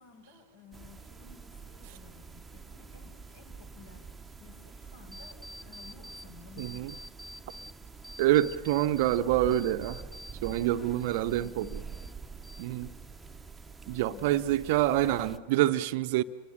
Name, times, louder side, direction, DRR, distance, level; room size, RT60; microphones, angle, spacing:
voice 1, 0.0-4.1 4.4-6.9 10.5-12.1 13.9-14.7, left 4 dB, 60° left, 5.2 m, -54 dB
sound 1, 0.7-15.4, right 5 dB, 10° right, 1.0 m, -47 dB
sound 2, 5.1-6.3 6.6-7.7 8.0-10.7 11.0-12.1 12.4-13.0, equal, 5° left, 2.2 m, -48 dB
voice 2, 6.6-6.9 8.2-10.0 10.4-11.8 12.6-12.9 13.9-16.2, right 13 dB, 50° right, 0.8 m, -26 dB
29.5 x 22.5 x 6.7 m
figure-of-eight pair, 90°, 0 cm